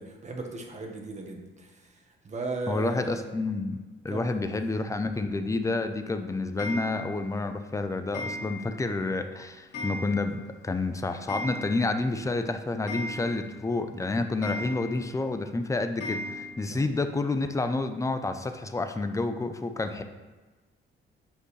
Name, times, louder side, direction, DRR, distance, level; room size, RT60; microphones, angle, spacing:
voice 1, 0.0-3.3 4.1-4.4 16.7-16.9, right 2 dB, 35° right, 2 dB, 1.3 m, -37 dB
voice 2, 2.7-3.8 4.0-20.0, left 3 dB, 15° left, 8 dB, 0.6 m, -29 dB
Clock, 6.6-7.3 8.1-8.9 9.2-9.3 9.7-10.5 10.8-10.9 11.1-12.1 12.4-12.5 12.9-13.7 14.4-15.1 16.0-16.5, left 2 dB, 60° left, 1.8 m, -37 dB
8.7 x 5.2 x 3.3 m, 1.3 s
cardioid pair, 90°, 20 cm